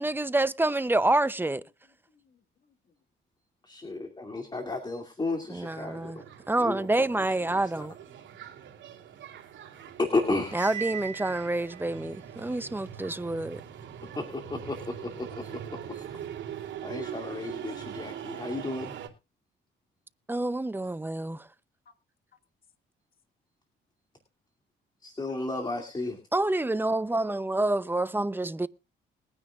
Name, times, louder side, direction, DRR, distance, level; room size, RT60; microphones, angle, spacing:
voice 1, 0.0-1.6 5.5-6.2 6.5-7.9 10.5-13.6 20.3-21.5 26.3-28.7, right 2 dB, 10° right, 0.6 m, -27 dB
voice 2, 2.1-2.4 8.1-9.3 14.0-14.1 21.9-22.0, left 5 dB, 50° left, 1.8 m, -65 dB
voice 3, 3.6-6.2 6.6-7.9 10.0-10.8 14.0-16.1 16.8-18.9 25.0-26.2, left 2 dB, 20° left, 2.5 m, -33 dB
sound 1, 5.7-19.1, right 9 dB, 75° right, 2.8 m, -42 dB
Cymbal, 10.5-11.9, right 9 dB, 35° right, 2.7 m, -38 dB
22.0 x 9.9 x 2.4 m
cardioid pair, 90°, 20 cm